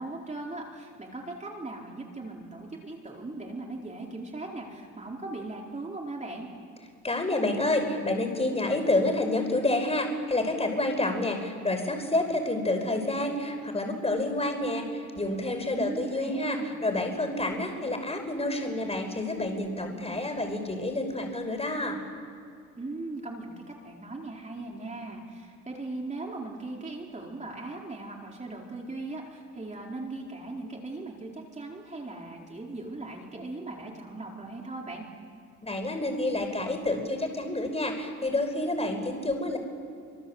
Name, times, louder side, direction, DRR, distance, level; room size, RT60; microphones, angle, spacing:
voice 1, 0.0-6.5 15.7-16.8 22.8-23.5 23.8-35.0, right 2 dB, 25° right, -1 dB, 4.7 m, -39 dB
voice 2, 7.0-22.0 35.6-39.6, left 2 dB, 20° left, 5 dB, 5.6 m, -29 dB
26.0 x 25.5 x 8.2 m, 2.5 s
cardioid pair, 90°, 30 cm